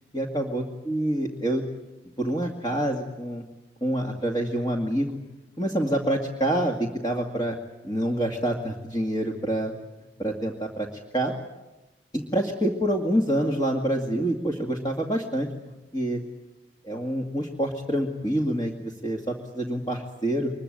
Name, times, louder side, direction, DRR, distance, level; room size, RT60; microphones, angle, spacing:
voice 1, 0.1-1.6 2.2-3.4 3.8-5.2 5.6-7.6 7.8-9.7 10.2-10.9 11.1-11.3 12.1-15.5 15.9-16.2 16.8-20.5, right 1 dB, 25° left, 0 dB, 2.3 m, -27 dB
25.0 x 22.5 x 8.9 m, 1.0 s
head